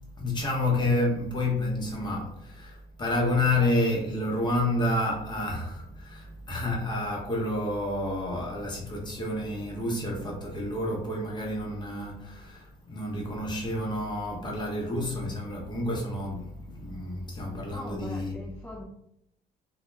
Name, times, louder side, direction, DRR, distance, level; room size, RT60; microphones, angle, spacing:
voice 1, 0.2-18.4, left 1 dB, 25° left, 0.7 m, -29 dB
voice 2, 17.6-18.8, left 1 dB, 10° left, 0.3 m, -41 dB
2.1 x 2.1 x 3.1 m
cardioid pair, 110°, 17 cm